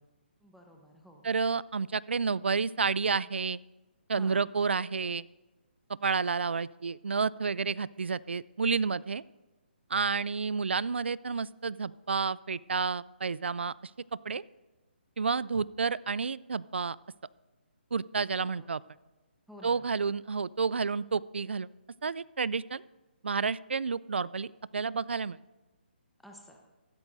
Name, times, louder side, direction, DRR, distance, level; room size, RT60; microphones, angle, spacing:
voice 1, 0.4-1.3 4.2-4.4 18.4-18.8 19.5-19.9 26.2-26.6, left 1 dB, ahead, 0 dB, 1.0 m, -52 dB
voice 2, 1.2-3.6 4.1-5.2 5.9-9.2 9.9-13.7 14.3-14.4 15.2-17.0 17.9-18.8 19.6-21.7 22.0-22.8 23.2-25.4, right 5 dB, 80° right, 21 dB, 0.3 m, -30 dB
15.5 x 13.0 x 2.6 m, 1.1 s
figure-of-eight pair, 145°, 6 cm